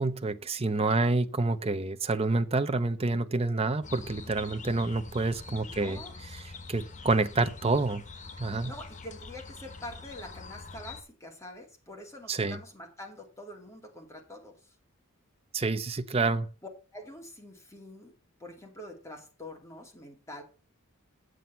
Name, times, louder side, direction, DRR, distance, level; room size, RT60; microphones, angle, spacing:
voice 1, 0.0-8.0 8.4-8.7 12.3-12.6 15.5-16.5, right 3 dB, 30° right, 0.7 m, -28 dB
sound 1, 3.8-11.0, left 4 dB, 35° left, 1.2 m, -45 dB
voice 2, 5.6-6.1 8.4-14.7 16.9-18.1 18.4-20.4, left 1 dB, 15° left, 2.4 m, -46 dB
8.3 x 7.8 x 5.6 m
head